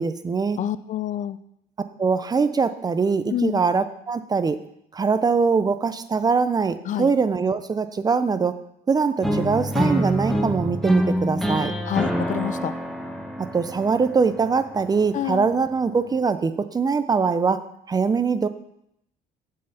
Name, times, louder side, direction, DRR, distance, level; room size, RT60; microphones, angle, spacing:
voice 1, 0.0-0.6 2.0-4.6 4.9-8.6 8.9-11.7 13.4-18.5, right 5 dB, 25° right, 12 dB, 0.5 m, -22 dB
voice 2, 0.6-1.4 3.3-3.6 6.9-7.1 11.9-12.7 15.1-15.5, left 11 dB, 50° left, 16 dB, 0.4 m, -27 dB
Creepy music part, 9.2-15.2, equal, ahead, 1.1 m, -26 dB
7.5 x 5.6 x 6.8 m, 0.77 s
cardioid pair, 110°, 17 cm